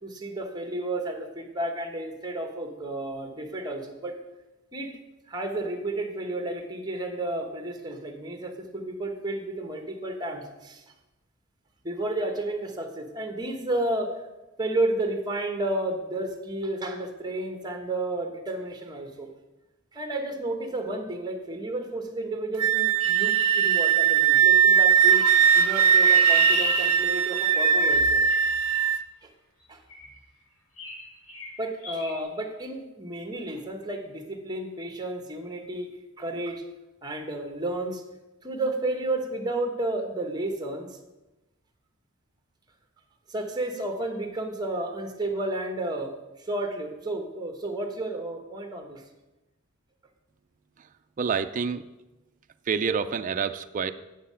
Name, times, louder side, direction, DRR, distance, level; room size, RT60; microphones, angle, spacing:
voice 1, 0.0-4.2 4.7-4.9 5.3-10.8 11.8-14.1 14.6-19.3 19.9-25.2 25.5-28.2 29.2-29.3 29.7-29.8 31.6-35.9 36.2-36.6 37.0-38.0 38.4-40.9 43.3-46.1 46.4-49.0, right 2 dB, 20° right, 4 dB, 1.2 m, -32 dB
Wind instrument woodwind instrument, 22.6-29.0, right 8 dB, 85° right, 0.6 m, -20 dB
Chirp tweet, 23.0-24.6 25.6-28.8 29.9-30.2 30.8-31.0 31.3-31.5 31.8-32.1, left 1 dB, 75° left, 2.7 m, -33 dB
voice 2, 51.2-51.8 52.7-53.9, right 6 dB, 35° right, 9 dB, 0.4 m, -28 dB
9.0 x 7.4 x 5.6 m, 1.0 s
head